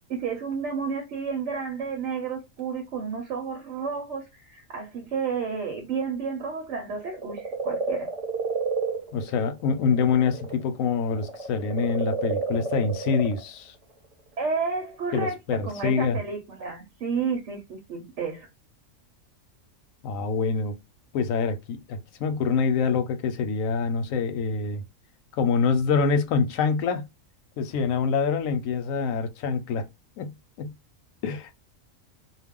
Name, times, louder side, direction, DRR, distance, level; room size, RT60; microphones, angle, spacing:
voice 1, 0.1-8.1 14.4-18.5, right 5 dB, 65° right, 1.0 m, -31 dB
sound 1, 7.0-10.6 10.9-13.5 14.5-14.6, right 3 dB, 35° right, 0.7 m, -30 dB
voice 2, 9.1-13.7 15.1-16.2 20.0-20.7 21.1-24.8 25.4-27.1 27.6-29.8 30.2-30.7 31.2-31.5, left 5 dB, 85° left, 1.0 m, -25 dB
2.3 x 2.3 x 3.5 m
omnidirectional pair, 1.4 m